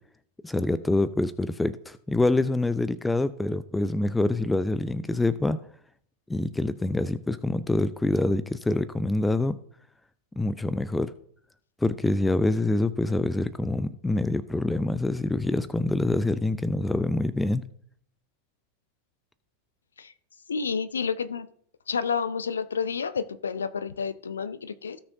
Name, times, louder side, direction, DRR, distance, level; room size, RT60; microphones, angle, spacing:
voice 1, 0.4-5.6 6.3-9.6 10.4-11.1 11.8-17.6, left 2 dB, 5° left, 15 dB, 0.4 m, -26 dB
voice 2, 20.5-21.5 21.9-25.0, left 6 dB, 70° left, 14 dB, 0.6 m, -30 dB
17.0 x 6.3 x 2.7 m, 0.63 s
figure-of-eight pair, 90°, 0 cm